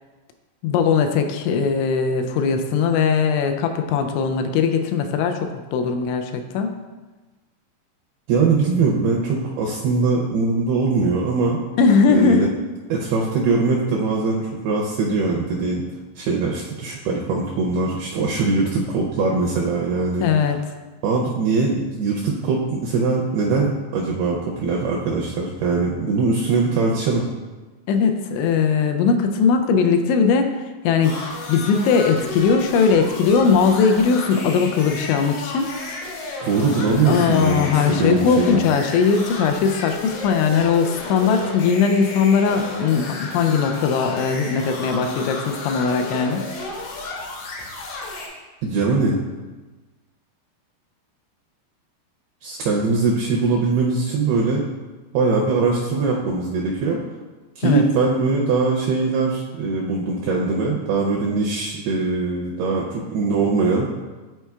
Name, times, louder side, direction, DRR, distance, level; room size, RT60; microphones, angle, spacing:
voice 1, 0.6-6.7 11.8-12.5 20.2-20.6 27.9-31.2 31.5-35.7 37.1-46.4 57.6-57.8, left 5 dB, 85° left, 6 dB, 2.9 m, -19 dB
voice 2, 8.3-11.6 12.1-12.5 12.9-15.8 16.2-20.3 21.0-27.2 36.4-38.7 48.6-49.2 52.4-54.7 55.1-57.0 57.6-63.9, right 4 dB, 85° right, -2 dB, 2.2 m, -21 dB
sound 1, 31.0-48.3, left 2 dB, 70° left, 2.2 m, -33 dB
10.5 x 4.4 x 2.3 m, 1.2 s
omnidirectional pair, 5.2 m